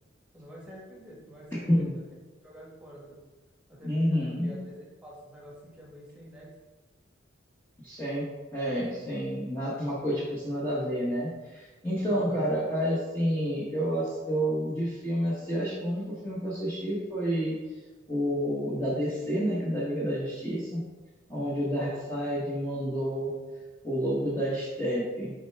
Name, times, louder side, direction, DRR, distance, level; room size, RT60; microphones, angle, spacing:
voice 1, 0.3-2.0 2.4-3.2 3.7-6.5 12.0-12.5 21.3-22.2, equal, 5° right, -4 dB, 1.3 m, -47 dB
voice 2, 3.8-4.6 7.8-8.2 8.5-17.5 18.1-20.8 21.3-23.3 23.8-25.3, equal, 10° left, -8 dB, 1.0 m, -29 dB
6.5 x 4.5 x 3.4 m, 1.2 s
head